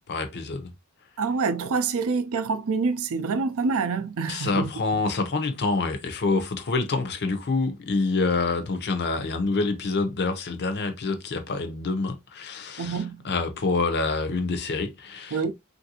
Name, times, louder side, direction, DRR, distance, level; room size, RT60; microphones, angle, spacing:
voice 1, 0.1-0.7 4.3-15.4, left 3 dB, 50° left, 0.6 m, -27 dB
voice 2, 1.2-4.7 12.8-13.2 15.3-15.5, right 4 dB, 65° right, 0.5 m, -26 dB
3.3 x 2.6 x 2.7 m
head